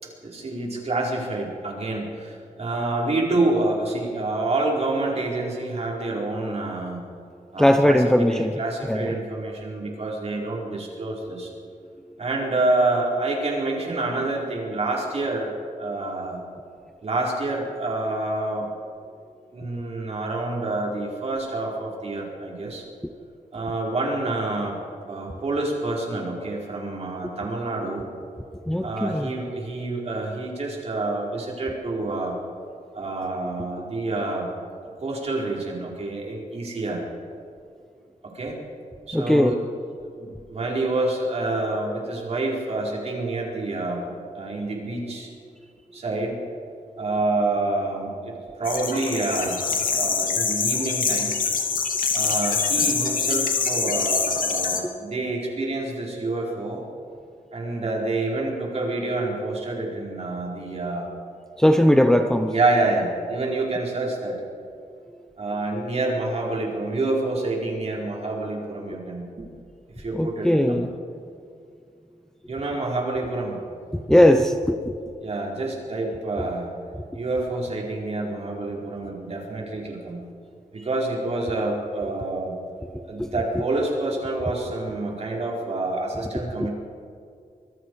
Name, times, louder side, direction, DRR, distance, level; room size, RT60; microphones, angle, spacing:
voice 1, 0.0-7.0 7.5-8.0 8.3-11.5 12.2-15.5 15.8-16.4 17.0-18.7 19.5-22.8 23.5-24.8 25.1-28.1 28.8-32.4 32.9-34.5 35.0-37.0 38.3-38.6 39.1-39.6 40.1-45.3 45.9-46.4 47.0-49.6 49.9-51.4 52.1-56.8 57.5-61.1 62.5-64.4 65.4-69.4 70.0-70.8 72.5-73.6 75.2-76.7 77.1-80.2 80.7-82.6 83.1-86.7, right 2 dB, 45° right, -2 dB, 4.7 m, -27 dB
voice 2, 7.6-8.6 8.9-9.2 28.7-29.3 39.1-39.6 61.6-62.5 70.1-70.9 73.9-75.0 77.0-77.1 83.2-83.3 83.5-83.6 86.6-86.7, left 1 dB, 5° left, 5 dB, 0.8 m, -19 dB
sound 1, 48.6-54.8, left 5 dB, 70° left, 2.5 m, -24 dB
25.5 x 22.5 x 4.8 m, 2.3 s
wide cardioid pair, 155°, 14 cm